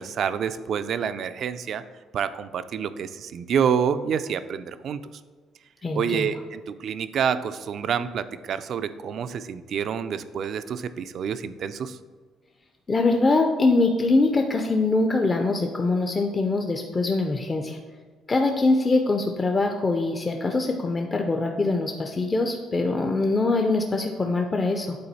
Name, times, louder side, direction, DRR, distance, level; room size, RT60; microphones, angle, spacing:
voice 1, 0.0-1.8 2.1-5.0 5.9-12.0, right 7 dB, 55° right, 12 dB, 0.4 m, -28 dB
voice 2, 5.8-6.3 12.9-17.8 18.3-25.0, left 3 dB, 25° left, 3 dB, 0.5 m, -23 dB
8.7 x 3.9 x 4.1 m, 1.5 s
cardioid pair, 125°, 0 cm